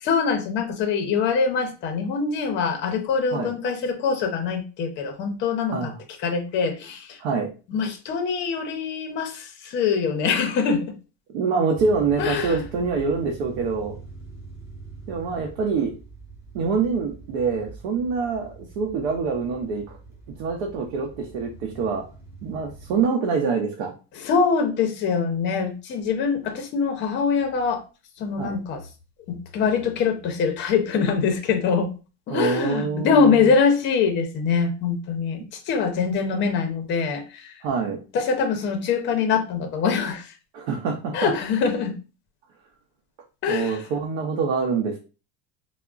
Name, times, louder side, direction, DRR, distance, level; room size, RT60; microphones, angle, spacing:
voice 1, 0.0-5.9 6.2-7.2 7.7-11.0 12.2-12.6 24.1-27.8 28.2-28.9 29.3-31.9 32.3-37.6 38.1-40.3 41.1-41.9 43.4-43.8, left 5 dB, 35° left, 5 dB, 0.6 m, -24 dB
voice 2, 7.2-7.5 11.3-13.9 15.1-15.9 16.5-19.8 20.4-22.0 22.4-23.9 28.4-28.6 32.3-33.2 37.6-38.0 40.5-41.3 43.5-45.0, right 5 dB, 75° right, 2 dB, 0.6 m, -25 dB
sound 1, 11.7-23.0, right 3 dB, 10° right, 1.2 m, -44 dB
3.5 x 2.1 x 2.3 m, 0.33 s
cardioid pair, 150°, 32 cm